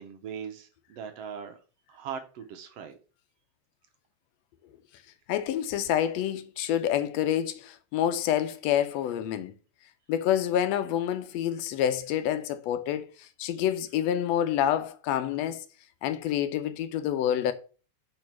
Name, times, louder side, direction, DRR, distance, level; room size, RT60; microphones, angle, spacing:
voice 1, 0.0-1.6 1.9-3.0, right 7 dB, 70° right, 1.7 m, -40 dB
voice 2, 5.3-9.5 10.1-15.6 16.0-17.5, left 10 dB, 75° left, 1.7 m, -28 dB
5.2 x 4.6 x 5.9 m
omnidirectional pair, 3.4 m